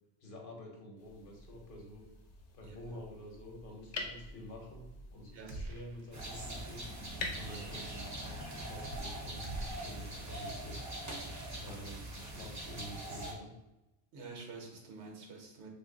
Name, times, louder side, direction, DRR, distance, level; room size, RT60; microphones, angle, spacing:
voice 1, 0.2-2.0 2.5-4.9 5.1-6.8 7.4-10.8 11.5-13.5, equal, 55° left, 0 dB, 0.9 m, -49 dB
sound 1, 1.0-9.0, left 3 dB, 85° left, 0.9 m, -47 dB
voice 2, 2.6-2.9 5.3-5.6 14.1-15.7, right 4 dB, 80° right, 2 dB, 1.0 m, -48 dB
sound 2, 5.5-6.4 6.7-6.8 9.4-10.7, right 2 dB, 60° right, 0.7 m, -44 dB
sound 3, 6.1-13.3, right 1 dB, 25° right, 0.4 m, -42 dB
2.8 x 2.5 x 3.7 m, 0.97 s
omnidirectional pair, 1.1 m